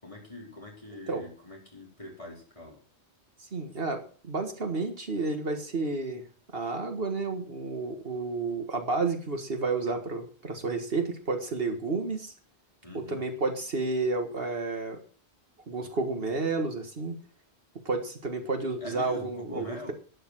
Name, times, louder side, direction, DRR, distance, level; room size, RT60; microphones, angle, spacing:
voice 1, 0.0-2.8 12.8-13.3 18.8-19.9, left 2 dB, 30° left, -1 dB, 4.5 m, -43 dB
voice 2, 3.4-6.2 6.5-12.3 12.9-15.0 15.7-17.2 17.9-19.9, right 3 dB, 60° right, 5 dB, 2.0 m, -31 dB
12.0 x 10.0 x 6.2 m, 0.41 s
omnidirectional pair, 1.1 m